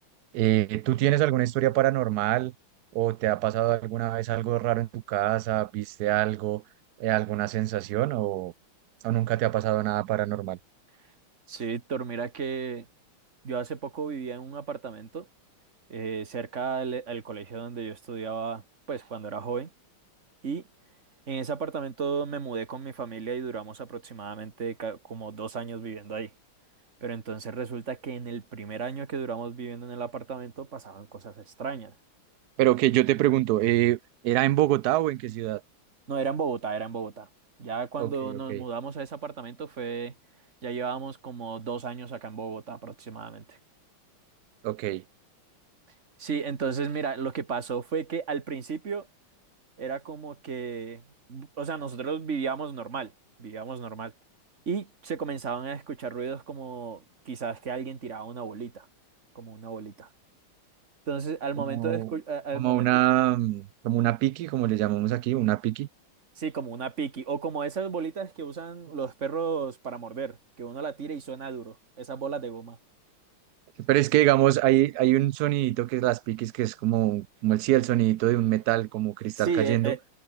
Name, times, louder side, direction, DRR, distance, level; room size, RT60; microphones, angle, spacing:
voice 1, 0.3-2.5 2.9-6.6 7.0-8.5 9.0-10.6 32.6-34.0 34.2-35.6 38.0-38.6 44.6-45.0 61.7-62.1 62.5-65.9 73.9-79.9, right 15 dB, 85° right, 0.8 m, -25 dB
voice 2, 11.5-12.9 13.4-15.3 15.9-18.6 18.9-19.7 20.4-20.6 21.3-26.3 27.0-31.9 36.1-37.3 37.6-40.2 40.6-43.6 46.2-49.1 49.8-51.0 51.3-53.1 53.4-54.1 54.7-58.9 59.4-60.1 61.1-62.9 66.4-72.8 79.4-80.0, right 5 dB, 35° right, 2.0 m, -34 dB
omnidirectional pair, 2.3 m